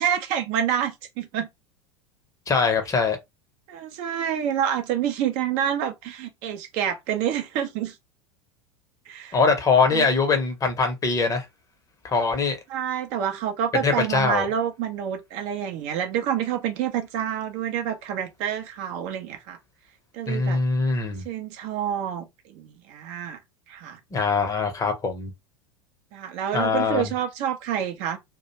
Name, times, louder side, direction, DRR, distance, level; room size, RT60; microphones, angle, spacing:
voice 1, 0.0-1.5 3.7-8.0 9.1-9.4 9.9-10.1 12.7-19.6 20.1-20.6 21.2-23.4 23.7-24.0 26.1-28.2, right 9 dB, 45° right, 0.5 m, -28 dB
voice 2, 2.5-3.2 9.3-11.4 12.0-12.6 13.8-14.5 20.3-21.2 24.1-25.3 26.5-27.1, left 4 dB, 20° left, 0.7 m, -22 dB
2.4 x 2.1 x 2.8 m
figure-of-eight pair, 80°, 16 cm